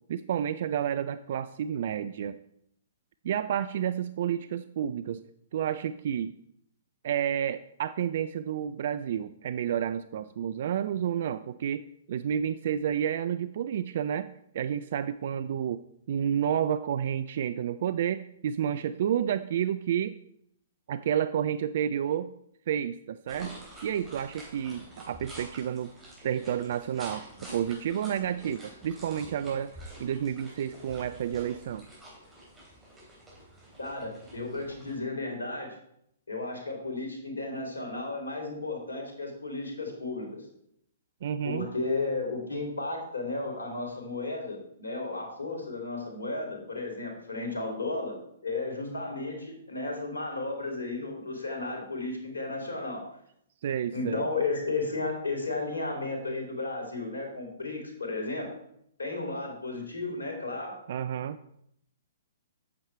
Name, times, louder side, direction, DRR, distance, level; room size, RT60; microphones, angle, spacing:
voice 1, 0.1-2.4 3.2-5.2 5.5-6.4 7.0-14.3 14.5-15.8 16.1-20.2 20.9-22.3 22.7-25.9 26.2-29.7 30.0-31.8 41.2-41.7 53.6-54.2 60.9-61.4, right 9 dB, 55° right, 14 dB, 0.3 m, -30 dB
sound 1, 23.3-35.0, right 1 dB, 10° right, 3.4 m, -48 dB
voice 2, 33.8-35.8 36.3-40.5 41.4-53.1 53.9-58.5 59.0-60.7, left 3 dB, 80° left, 2 dB, 2.8 m, -34 dB
8.5 x 7.2 x 4.5 m, 0.73 s
figure-of-eight pair, 120°, 0 cm